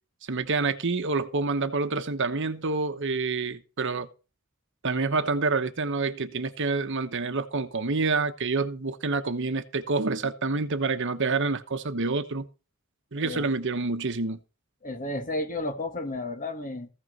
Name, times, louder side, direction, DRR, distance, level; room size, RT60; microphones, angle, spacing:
voice 1, 0.3-4.1 4.8-12.5 13.1-14.4, right 3 dB, 60° right, 1.0 m, -27 dB
voice 2, 13.2-13.5 14.8-16.9, left 2 dB, 40° left, 1.7 m, -32 dB
15.0 x 6.1 x 5.3 m
head